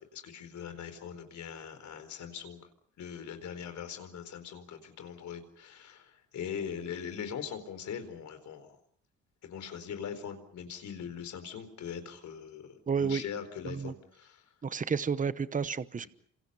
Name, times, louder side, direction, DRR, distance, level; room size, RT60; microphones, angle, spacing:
voice 1, 0.0-2.7 3.0-8.7 9.4-14.4, left 7 dB, 70° left, 8 dB, 4.4 m, -41 dB
voice 2, 12.9-13.2 13.6-13.9 14.6-16.1, right 6 dB, 25° right, 15 dB, 1.0 m, -31 dB
28.5 x 26.5 x 5.6 m, 0.63 s
cardioid pair, 90°, 30 cm